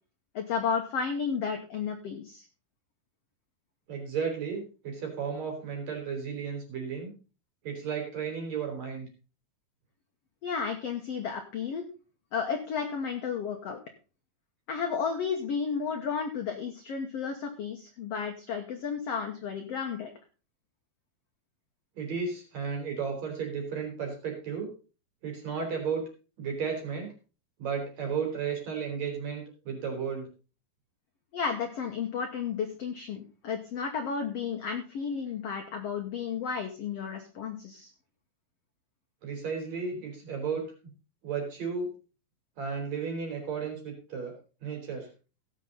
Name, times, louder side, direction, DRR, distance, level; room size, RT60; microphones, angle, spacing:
voice 1, 0.3-2.4 10.4-11.8 12.3-13.8 14.7-20.1 31.3-37.9, left 6 dB, 70° left, 5 dB, 1.5 m, -33 dB
voice 2, 3.9-7.1 7.6-9.1 22.0-24.7 25.2-26.0 26.4-27.1 27.6-30.3 39.2-40.6 41.2-41.9 42.6-44.3 44.6-45.1, right 6 dB, 45° right, 2 dB, 4.5 m, -33 dB
17.0 x 7.6 x 3.9 m, 0.35 s
omnidirectional pair, 4.4 m